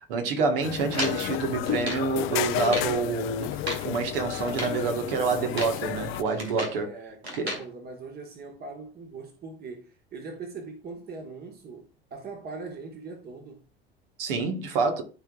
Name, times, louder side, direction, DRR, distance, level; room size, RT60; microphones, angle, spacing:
voice 1, 0.1-3.6 3.8-6.9 7.4-7.6 14.2-15.0, right 4 dB, 65° right, 1.6 m, -27 dB
sound 1, 0.6-6.2, left 15 dB, 45° left, 0.6 m, -32 dB
sound 2, 0.9-2.1 2.5-3.0 3.4-3.9 4.4-4.8 5.4-5.8 6.1-6.8 7.2-7.7, equal, 90° right, 1.9 m, -34 dB
voice 2, 6.7-13.6, right 4 dB, 30° right, 1.4 m, -41 dB
13.0 x 4.5 x 2.4 m
figure-of-eight pair, 70°, 30 cm